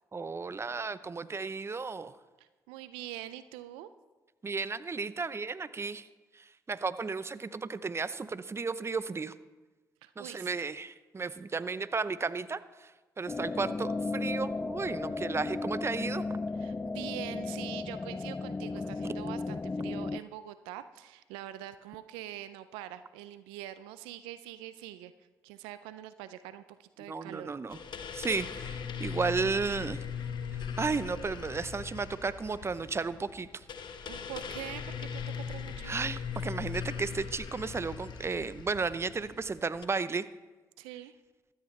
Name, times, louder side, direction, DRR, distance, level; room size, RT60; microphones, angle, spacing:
voice 1, 0.1-2.1 4.4-6.1 6.7-9.3 10.2-12.6 13.2-16.3 27.1-27.8 28.1-30.0 30.8-33.5 35.8-40.2, right 4 dB, 30° right, 14 dB, 0.7 m, -33 dB
voice 2, 2.4-3.9 10.0-10.7 16.5-25.1 25.4-27.5 34.1-36.0 40.8-41.1, right 13 dB, 85° right, 13 dB, 0.4 m, -44 dB
sound 1, 13.3-20.2, left 3 dB, 20° left, 0.4 m, -35 dB
sound 2, 27.7-39.9, left 7 dB, 60° left, 1.2 m, -40 dB
15.0 x 13.0 x 3.3 m, 1.2 s
hypercardioid pair, 45°, 9 cm